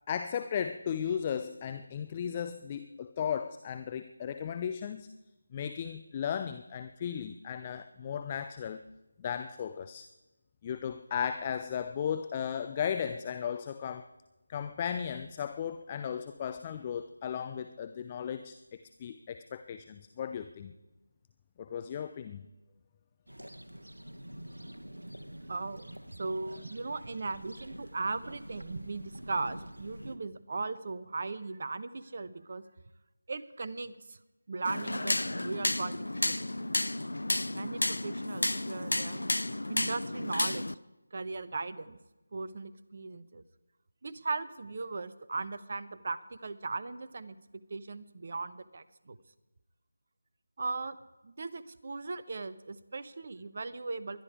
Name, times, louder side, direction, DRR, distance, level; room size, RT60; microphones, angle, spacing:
voice 1, 0.1-5.2 5.5-8.8 9.2-10.1 10.6-14.1 14.5-20.7 21.6-22.5, left 8 dB, 20° left, 10 dB, 0.5 m, -36 dB
sound 1, 23.3-30.2, right 1 dB, 80° right, 1.4 m, -47 dB
voice 2, 25.5-32.6 33.3-34.2 34.5-36.7 37.5-39.3 39.7-40.7 41.1-42.0 42.3-43.4 44.0-47.4 47.7-49.2 50.6-51.0 51.2-54.2, right 3 dB, 40° right, 13 dB, 0.9 m, -38 dB
sound 2, 34.6-40.7, left 1 dB, 70° left, 0.5 m, -32 dB
20.5 x 12.0 x 4.8 m, 1.0 s
figure-of-eight pair, 160°, 0 cm